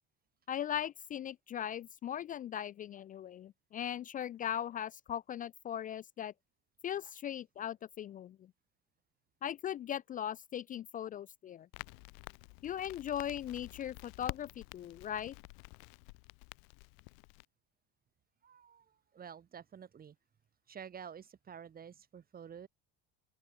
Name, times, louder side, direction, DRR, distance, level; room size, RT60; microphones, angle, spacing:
voice 1, 0.5-6.3 6.8-8.5 9.4-11.7 12.6-15.3, left 10 dB, 25° left, 0.4 m, -39 dB
Crackle, 11.7-17.4, left 40 dB or more, 70° left, 1.1 m, -49 dB
voice 2, 18.4-20.2 20.7-22.7, right 7 dB, 25° right, 4.3 m, -50 dB
open air
supercardioid pair, 135°, 32 cm